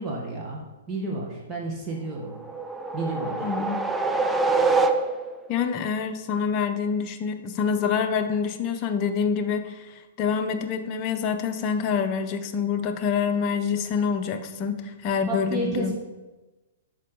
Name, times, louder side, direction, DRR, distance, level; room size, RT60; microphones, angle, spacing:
voice 1, 0.0-2.3 2.9-3.5 15.3-15.9, right 2 dB, 25° right, -2 dB, 1.2 m, -31 dB
sound 1, 2.2-5.5, right 3 dB, 10° right, 0.4 m, -25 dB
voice 2, 3.4-3.8 5.5-15.9, left 6 dB, 35° left, 6 dB, 0.7 m, -26 dB
6.5 x 4.7 x 3.8 m, 1.1 s
hypercardioid pair, 120°, 0 cm